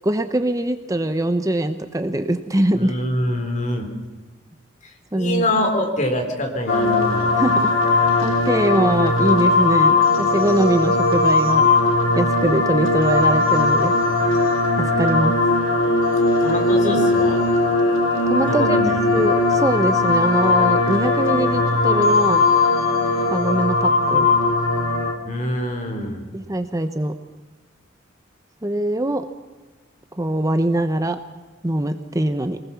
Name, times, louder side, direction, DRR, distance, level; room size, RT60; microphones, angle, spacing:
voice 1, 0.0-2.9 5.1-5.5 7.4-11.7 12.2-13.9 14.8-15.4 18.3-18.8 19.1-22.4 23.3-24.3 26.3-27.1 28.6-29.3 30.2-31.2 31.6-32.6, right 1 dB, 15° right, 9 dB, 0.8 m, -22 dB
voice 2, 2.7-3.9 4.8-7.3 16.4-17.4 18.5-19.2 25.2-26.2, left 1 dB, 40° left, 4 dB, 3.8 m, -25 dB
sound 1, 6.7-25.1, left 3 dB, 85° left, 3.2 m, -18 dB
23.5 x 19.5 x 7.1 m, 1.3 s
head